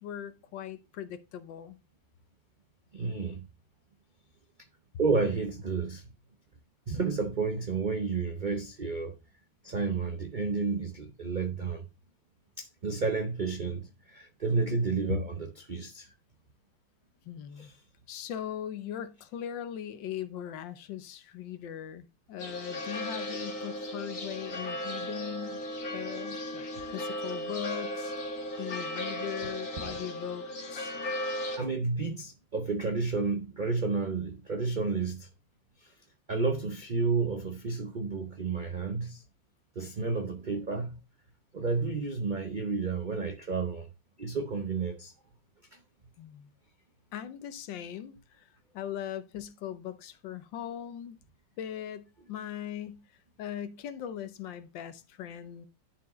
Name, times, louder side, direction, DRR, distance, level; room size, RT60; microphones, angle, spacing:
voice 1, 0.0-1.8 15.1-15.2 17.2-17.7 18.1-25.6 25.9-28.1 28.6-30.9 46.2-46.5 47.1-48.5 48.7-51.2 51.6-53.0 53.4-55.7, left 9 dB, 80° left, 1.5 m, -39 dB
voice 2, 2.9-3.5 5.0-6.1 6.9-9.1 9.6-11.9 12.6-16.1 17.6-17.8 26.7-26.8 29.8-30.0 31.6-35.3 35.8-35.9 36.3-39.2 39.7-41.0 41.5-43.9 44.2-45.1 45.7-45.8, right 4 dB, 75° right, 0.4 m, -31 dB
sound 1, 22.4-31.6, left 1 dB, 45° left, 2.0 m, -36 dB
11.0 x 4.6 x 3.0 m
omnidirectional pair, 2.0 m